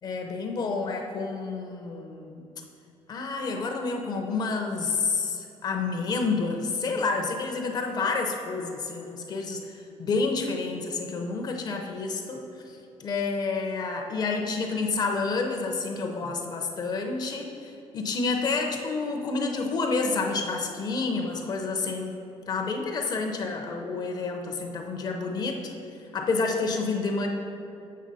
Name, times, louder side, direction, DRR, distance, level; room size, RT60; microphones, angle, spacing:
voice 1, 0.0-2.5 3.1-22.2 22.5-25.7 26.1-27.3, left 4 dB, 35° left, 3 dB, 0.6 m, -29 dB
7.4 x 5.9 x 4.1 m, 2.6 s
cardioid pair, 170°, 11 cm